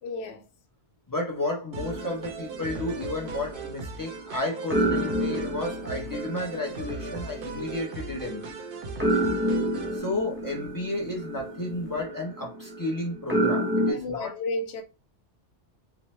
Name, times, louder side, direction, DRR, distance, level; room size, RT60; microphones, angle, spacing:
voice 1, 0.0-0.4 13.9-14.8, left 2 dB, 80° left, 0.9 m, -32 dB
voice 2, 1.1-8.6 9.9-14.3, left 2 dB, 25° left, 0.5 m, -32 dB
sound 1, 1.7-4.3 4.7-13.9, right 1 dB, 10° right, 0.7 m, -30 dB
sound 2, 1.7-10.0, right 3 dB, 60° right, 0.7 m, -39 dB
2.8 x 2.1 x 3.0 m
omnidirectional pair, 1.2 m